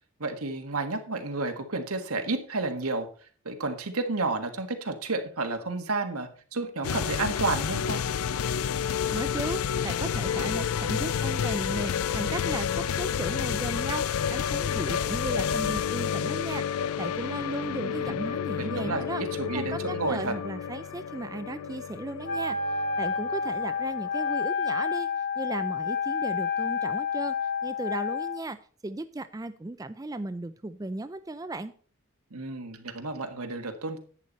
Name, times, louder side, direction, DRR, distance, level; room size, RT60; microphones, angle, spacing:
voice 1, 0.2-3.1 3.4-8.0 17.8-20.3 32.3-34.0, right 3 dB, 90° right, 6 dB, 1.6 m, -31 dB
sound 1, 6.8-24.4, left 8 dB, 85° left, 0.4 m, -30 dB
voice 2, 9.1-19.2 19.5-25.1 25.4-27.4 27.6-28.6 28.8-31.7, right 2 dB, 15° right, 11 dB, 0.4 m, -36 dB
Wind instrument woodwind instrument, 22.2-28.4, left 5 dB, 50° left, 1.4 m, -29 dB
11.0 x 9.0 x 4.1 m, 0.43 s
head